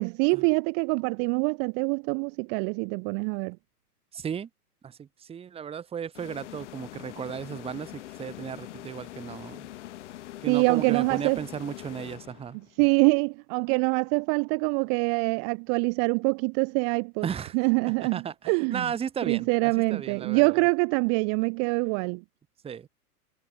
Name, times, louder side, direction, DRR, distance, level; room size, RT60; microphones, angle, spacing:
voice 1, 0.0-3.6 10.5-11.4 12.8-17.3 17.5-18.9 19.3-22.2, right 40 dB or more, 30° right, 1.6 m, -25 dB
voice 2, 4.1-4.5 4.8-9.7 10.4-12.6 17.2-17.6 18.0-20.5 22.6-22.9, right 8 dB, 10° right, 1.9 m, -35 dB
sound 1, 6.1-12.8, left 14 dB, 50° left, 5.5 m, -43 dB
figure-of-eight pair, 110°, 46 cm